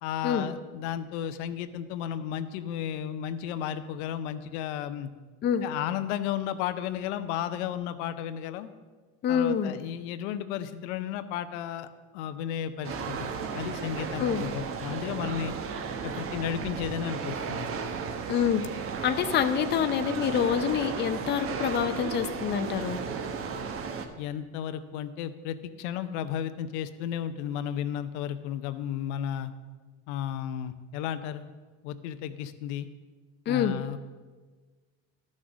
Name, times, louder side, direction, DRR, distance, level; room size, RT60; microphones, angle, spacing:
voice 1, 0.0-5.1 5.6-8.7 9.3-11.9 12.1-15.5 16.0-17.7 24.2-29.5 30.1-31.5 31.8-32.9 33.5-34.0, left 10 dB, 75° left, 10 dB, 0.8 m, -33 dB
voice 2, 9.2-9.7 14.2-14.4 18.3-18.6 19.0-23.0 33.5-33.7, left 8 dB, 30° left, 8 dB, 0.6 m, -26 dB
sound 1, 12.8-24.1, right 5 dB, 40° right, 1.0 m, -34 dB
12.0 x 6.4 x 6.2 m, 1.4 s
supercardioid pair, 130°, 35 cm